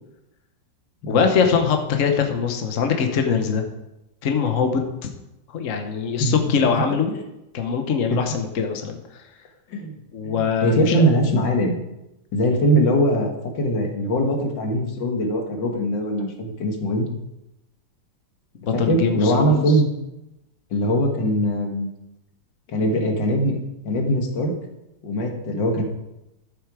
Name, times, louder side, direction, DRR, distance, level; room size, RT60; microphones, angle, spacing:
voice 1, 1.1-3.7 4.2-5.1 5.5-7.1 7.5-9.0 10.1-11.0 18.6-19.6, left 6 dB, 50° left, 5 dB, 1.3 m, -22 dB
voice 2, 10.2-11.8 12.3-13.3 13.6-17.1 18.7-19.9 20.7-21.9 22.7-23.6 23.8-24.5 25.0-25.8, equal, 75° left, 2 dB, 2.2 m, -21 dB
13.0 x 7.1 x 4.9 m, 0.91 s
omnidirectional pair, 2.0 m